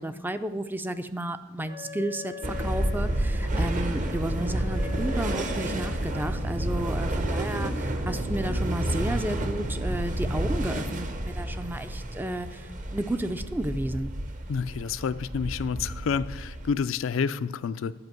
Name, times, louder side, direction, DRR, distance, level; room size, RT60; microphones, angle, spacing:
voice 1, 0.0-2.3 2.6-14.1, right 1 dB, 10° right, 10 dB, 0.4 m, -32 dB
Wind instrument woodwind instrument, 1.6-6.1, left 8 dB, 90° right, 3.8 m, -43 dB
sound 1, 2.4-16.7, right 1 dB, 40° right, 0.8 m, -30 dB
voice 2, 14.5-17.9, left 6 dB, 70° left, 14 dB, 0.4 m, -29 dB
10.5 x 5.2 x 7.7 m, 1.2 s
head